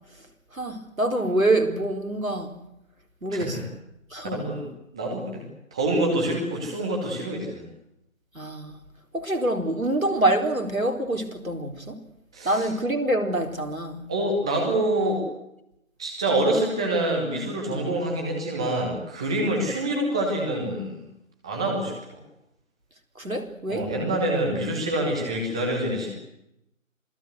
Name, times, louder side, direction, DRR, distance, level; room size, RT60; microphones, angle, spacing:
voice 1, 0.5-2.5 3.2-3.6 4.1-4.5 8.3-8.8 9.1-12.0 12.4-14.1 17.8-18.0 23.2-23.9, right 1 dB, 85° right, 4.4 m, -26 dB
voice 2, 3.3-3.6 4.2-4.6 4.9-5.4 5.7-7.6 12.3-12.7 14.1-15.3 16.0-20.9 21.4-21.9 23.7-26.1, right 1 dB, 5° right, 1.1 m, -26 dB
27.0 x 18.0 x 8.0 m
figure-of-eight pair, 155°, 40 cm